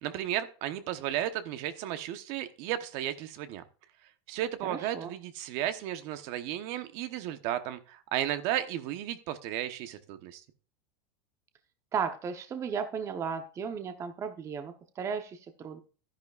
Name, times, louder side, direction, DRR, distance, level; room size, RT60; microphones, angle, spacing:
voice 1, 0.0-3.6 4.3-10.4, right 12 dB, 50° right, 9 dB, 1.0 m, -34 dB
voice 2, 4.7-5.1 11.9-15.8, right 6 dB, 25° right, 7 dB, 0.9 m, -35 dB
12.0 x 10.5 x 2.4 m, 0.37 s
supercardioid pair, 150°, 13 cm